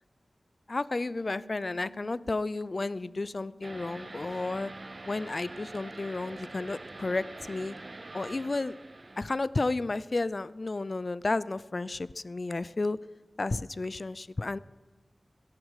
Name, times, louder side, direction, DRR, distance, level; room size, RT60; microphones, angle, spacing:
voice 1, 0.7-4.7 5.1-7.7 8.1-8.7 9.2-13.0 13.4-14.6, left 3 dB, 55° left, 18 dB, 0.4 m, -32 dB
Piano, 1.1-6.2, right 1 dB, 25° left, 4.8 m, -58 dB
sound 1, 3.6-9.3, right 2 dB, 45° right, 0.5 m, -44 dB
16.5 x 14.0 x 4.9 m, 1.4 s
wide cardioid pair, 65°, 0 cm